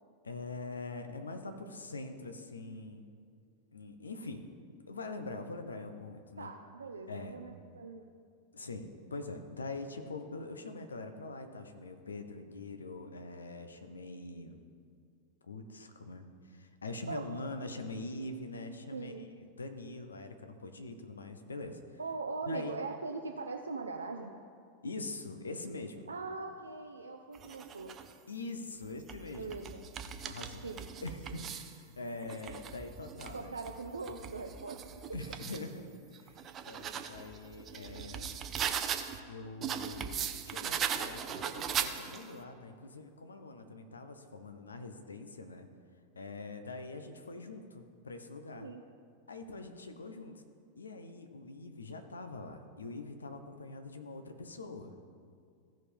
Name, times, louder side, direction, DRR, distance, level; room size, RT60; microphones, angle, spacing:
voice 1, 0.2-3.1 3.7-4.5 4.9-6.5 7.1-7.4 8.5-14.6 15.4-22.0 22.5-22.8 24.8-26.1 28.3-29.5 30.2-30.6 31.0-33.5 35.1-35.9 36.1-38.4 39.3-45.7 46.1-48.7 49.3-50.4 50.8-54.9, left 2 dB, 75° left, 7 dB, 0.9 m, -43 dB
voice 2, 6.4-8.1 17.1-17.4 18.9-19.3 22.0-24.3 26.1-27.9 29.4-29.8 30.6-30.9 33.3-34.9 48.5-48.8, right 3 dB, 75° right, 3 dB, 0.5 m, -41 dB
sound 1, 27.3-28.1 28.8-31.8 32.2-35.7 36.1-39.2 39.6-42.4, right 8 dB, 30° right, 0.6 m, -39 dB
15.0 x 5.2 x 5.4 m, 2.2 s
figure-of-eight pair, 90°, 0 cm